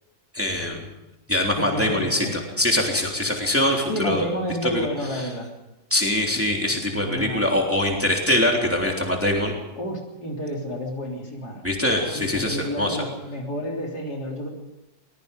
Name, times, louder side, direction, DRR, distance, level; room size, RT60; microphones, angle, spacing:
voice 1, 0.3-0.9 1.3-2.3 2.6-4.2 4.6-4.9 5.1-5.2 5.9-9.5 11.6-13.0, left 1 dB, 5° right, 0 dB, 3.4 m, -23 dB
voice 2, 1.5-2.3 3.9-5.5 6.8-7.7 9.8-11.6 12.1-14.5, equal, 55° left, 0 dB, 4.2 m, -30 dB
24.0 x 20.5 x 5.4 m, 0.95 s
omnidirectional pair, 2.1 m